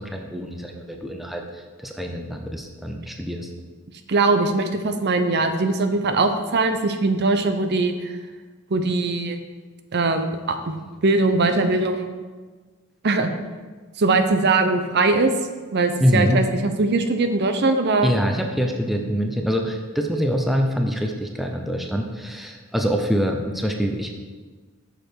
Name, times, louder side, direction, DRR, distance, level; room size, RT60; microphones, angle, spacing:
voice 1, 0.0-3.5 16.0-16.4 18.0-24.1, equal, ahead, 2 dB, 0.6 m, -24 dB
voice 2, 4.1-8.1 8.7-9.4 9.9-10.8 11.0-12.1 13.0-13.3 14.0-15.3 15.7-18.1, right 3 dB, 50° right, 8 dB, 0.6 m, -21 dB
7.7 x 6.7 x 4.6 m, 1.4 s
head